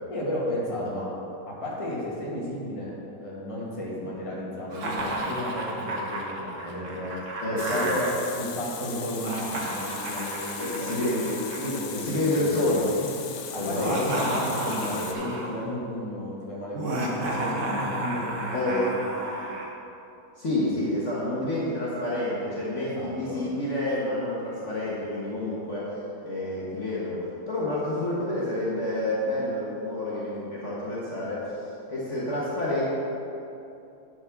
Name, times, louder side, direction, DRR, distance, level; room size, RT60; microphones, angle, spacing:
voice 1, 0.1-1.1 1.5-2.9 3.2-7.1 7.5-8.1 8.3-12.8 13.5-18.9 22.8-23.4, equal, 20° left, -6 dB, 1.7 m, -33 dB
Laughter, 4.7-8.1 9.1-12.4 13.6-15.6 16.7-19.7, right 1 dB, 50° right, 1.4 m, -32 dB
voice 2, 7.4-7.9 10.6-11.1 11.9-13.1 13.6-13.9 18.5-18.9 20.4-25.9 26.2-31.5 31.9-32.9, left 1 dB, 45° left, -7 dB, 1.6 m, -28 dB
Water tap faucet, 7.6-15.1, left 7 dB, 85° left, 1.4 m, -38 dB
10.5 x 4.9 x 5.8 m, 2.8 s
omnidirectional pair, 1.8 m